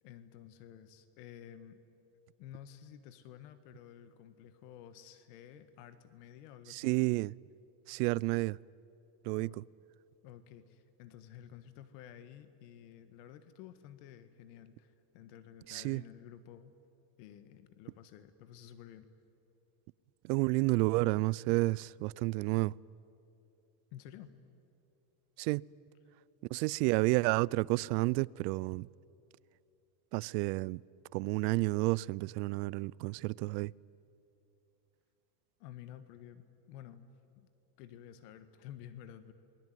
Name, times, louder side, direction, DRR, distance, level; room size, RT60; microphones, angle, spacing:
voice 1, 0.0-1.8 2.4-6.9 9.3-9.6 10.2-16.7 17.2-19.1 23.9-24.3 35.6-37.1 37.4-37.5 37.8-39.3, left 10 dB, 75° left, 1.6 m, -52 dB
voice 2, 6.7-7.3 7.9-8.6 9.2-9.6 15.7-16.0 20.2-22.7 25.4-25.6 26.5-28.9 30.1-30.8 31.1-33.7, right 23 dB, 80° right, 0.6 m, -30 dB
28.5 x 21.0 x 9.3 m
supercardioid pair, 135°, 48 cm